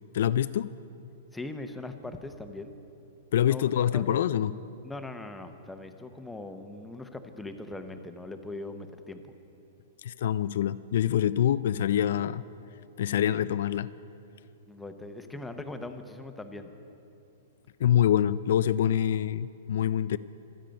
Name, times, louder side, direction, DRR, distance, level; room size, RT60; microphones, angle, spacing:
voice 1, 0.1-0.7 3.3-4.6 10.0-12.4 13.0-13.9 17.8-20.2, left 10 dB, 65° left, 15 dB, 0.3 m, -25 dB
voice 2, 1.3-2.7 3.4-3.6 3.9-4.2 4.8-9.3 14.7-16.7, left 2 dB, 5° left, 6 dB, 0.7 m, -40 dB
25.5 x 9.0 x 5.2 m, 2.7 s
hypercardioid pair, 160°, 0 cm